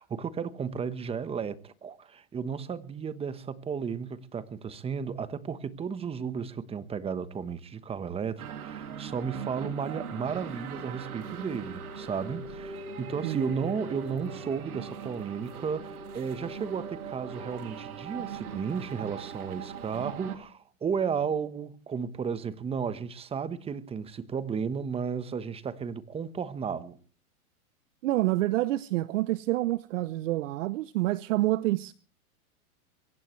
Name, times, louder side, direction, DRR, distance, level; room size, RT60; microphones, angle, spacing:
voice 1, 0.0-27.0, right 6 dB, 15° right, 1.1 m, -34 dB
sound 1, 8.4-20.4, right 6 dB, 80° right, 2.8 m, -40 dB
voice 2, 28.0-31.9, right 17 dB, 60° right, 0.7 m, -27 dB
23.0 x 17.0 x 3.2 m
hypercardioid pair, 130°, 43 cm